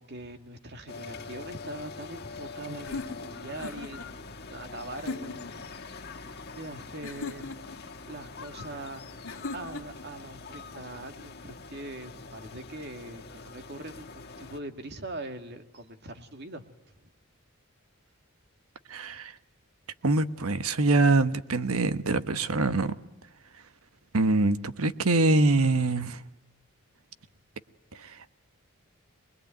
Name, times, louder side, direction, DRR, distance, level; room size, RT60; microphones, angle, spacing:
voice 1, 0.0-5.8 6.5-7.5 8.1-9.2 9.5-16.7 17.0-17.1, right 1 dB, 50° right, 2.3 m, -42 dB
sound 1, 0.9-14.6, left 4 dB, 45° left, 2.1 m, -44 dB
sound 2, 2.8-4.1 4.9-5.6 7.0-7.8 9.2-10.1, left 3 dB, 70° left, 2.4 m, -38 dB
voice 2, 18.9-19.3 20.0-23.0 24.1-26.2 27.9-28.3, right 2 dB, 80° right, 1.2 m, -24 dB
24.5 x 21.5 x 9.2 m
head